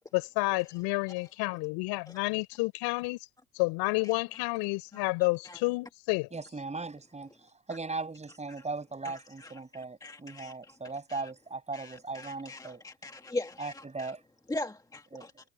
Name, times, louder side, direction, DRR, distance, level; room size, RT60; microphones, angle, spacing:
voice 1, 0.1-3.2 3.5-6.3, left 26 dB, 65° left, 4.5 m, -30 dB
voice 2, 6.3-12.8 13.6-14.2 15.1-15.3, right 3 dB, 15° right, 6.3 m, -38 dB
voice 3, 9.0-9.6 10.0-10.7 11.1-11.3 11.7-14.1 14.5-15.3, left 2 dB, 10° left, 1.7 m, -40 dB
hypercardioid pair, 85°, 42 cm